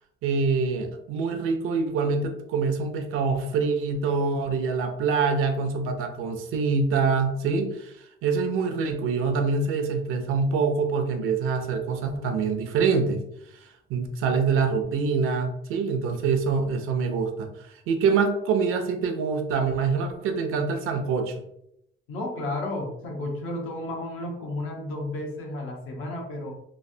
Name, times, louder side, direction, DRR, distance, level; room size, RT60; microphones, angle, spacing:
voice 1, 0.2-7.9 8.2-13.2 13.9-21.4, right 5 dB, 85° right, 5 dB, 0.6 m, -25 dB
voice 2, 22.1-26.5, left 1 dB, 80° left, 0 dB, 0.9 m, -32 dB
3.1 x 2.4 x 2.6 m, 0.77 s
cardioid pair, 140°, 21 cm